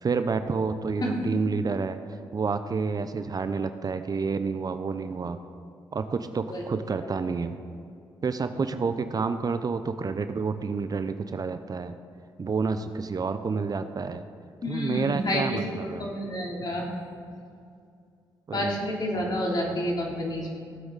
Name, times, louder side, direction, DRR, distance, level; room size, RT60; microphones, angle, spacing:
voice 1, 0.0-5.4 5.9-7.6 8.2-12.0 12.4-14.3 14.7-16.1 18.5-18.8, right 4 dB, 40° right, 10 dB, 0.7 m, -29 dB
voice 2, 14.6-15.4 16.0-16.9 18.5-20.5, left 1 dB, 45° left, -2 dB, 3.3 m, -29 dB
17.5 x 7.9 x 4.1 m, 2.4 s
supercardioid pair, 55°, 10 cm